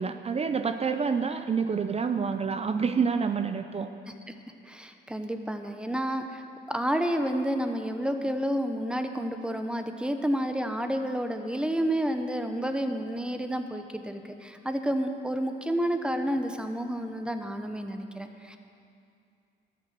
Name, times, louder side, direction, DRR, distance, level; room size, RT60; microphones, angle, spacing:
voice 1, 0.0-3.9, right 5 dB, 30° right, 8 dB, 0.5 m, -28 dB
voice 2, 4.7-18.6, equal, 5° right, 6 dB, 0.9 m, -30 dB
13.0 x 8.5 x 6.7 m, 2.5 s
cardioid pair, 90°, 20 cm